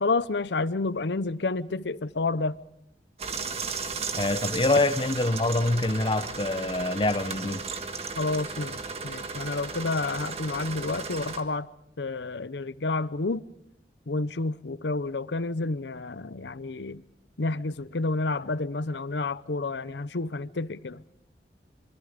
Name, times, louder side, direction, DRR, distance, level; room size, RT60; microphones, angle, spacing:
voice 1, 0.0-2.6 8.2-11.7 12.0-13.4 14.1-17.0 17.4-21.0, left 3 dB, 80° left, 0.8 m, -30 dB
sound 1, 3.2-11.4, right 4 dB, 35° right, 1.6 m, -35 dB
voice 2, 4.1-7.6, left 2 dB, 30° left, 0.8 m, -25 dB
26.5 x 24.5 x 5.1 m
head